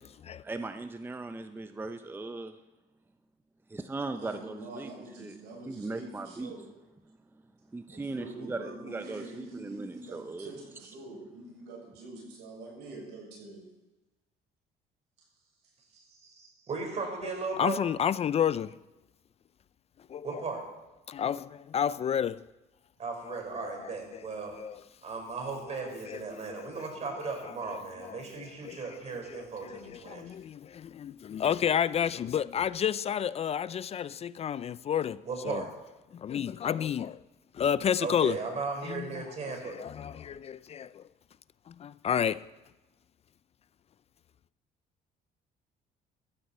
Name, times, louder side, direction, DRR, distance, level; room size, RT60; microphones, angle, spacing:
voice 1, 0.4-2.6 3.7-4.9 5.2-5.4 5.6-6.5 7.1-7.4 7.7-10.5, right 3 dB, 15° right, 0.7 m, -38 dB
voice 2, 4.1-6.7 7.9-13.7 15.6-16.2 16.9-17.0, right 2 dB, 90° right, 6.9 m, -46 dB
voice 3, 16.2-17.8 20.2-20.6 23.0-24.5 25.0-30.2 35.2-35.7 38.0-39.8, right 4 dB, 40° right, 4.9 m, -36 dB
voice 4, 17.6-18.7 20.1-20.4 21.1-22.4 23.2-24.2 24.5-24.8 25.8-26.9 27.2-28.8 29.3-35.6 36.1-37.2 37.5-38.4 38.8-41.0 41.7-42.4, left 8 dB, 40° left, 0.4 m, -31 dB
16.0 x 14.0 x 4.4 m
cardioid pair, 110°, 17 cm